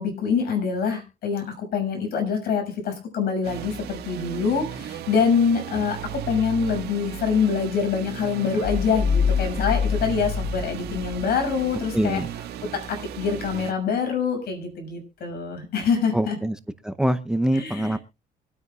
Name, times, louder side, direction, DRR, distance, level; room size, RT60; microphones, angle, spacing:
voice 1, 0.0-12.2 12.9-16.4 17.5-17.9, left 6 dB, 65° left, 5 dB, 6.4 m, -25 dB
sound 1, 3.4-13.7, right 10 dB, 75° right, 1.6 m, -36 dB
sound 2, 8.6-11.3, left 6 dB, 25° left, 1.0 m, -25 dB
voice 2, 11.9-12.3 16.1-16.5 16.8-18.0, right 1 dB, 5° right, 11 dB, 0.7 m, -24 dB
24.5 x 9.4 x 2.4 m, 0.28 s
cardioid pair, 110°, 17 cm